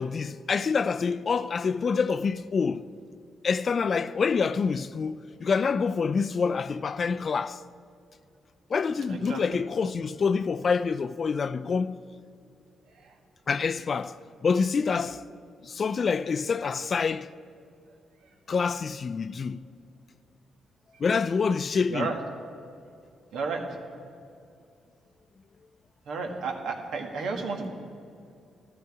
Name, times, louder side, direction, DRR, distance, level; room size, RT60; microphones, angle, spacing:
voice 1, 0.0-2.9 3.4-7.6 8.7-12.0 13.5-15.2 15.6-17.3 18.5-19.6 21.0-22.1, left 5 dB, 40° left, 0.3 m, -27 dB
voice 2, 9.1-9.4 12.9-13.1 21.9-22.2 23.3-23.7 26.0-27.7, right 4 dB, 80° right, 1.7 m, -32 dB
14.5 x 13.5 x 4.8 m
cardioid pair, 120°, 0 cm